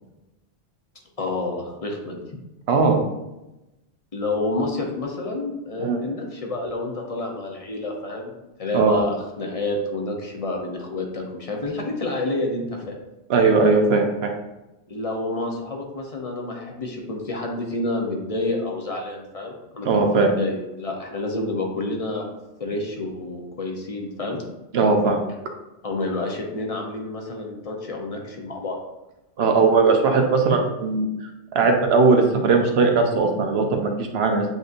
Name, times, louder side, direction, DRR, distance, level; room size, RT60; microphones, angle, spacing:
voice 1, 1.2-2.2 4.1-12.9 14.9-22.2 22.6-24.4 25.8-28.8, left 2 dB, 40° left, 0 dB, 0.7 m, -29 dB
voice 2, 2.7-3.0 5.8-6.0 8.7-9.0 13.3-14.3 19.8-20.3 24.7-25.2 29.4-31.1 31.5-34.4, right 4 dB, 75° right, 3 dB, 1.0 m, -19 dB
7.8 x 2.6 x 2.5 m, 0.98 s
omnidirectional pair, 1.1 m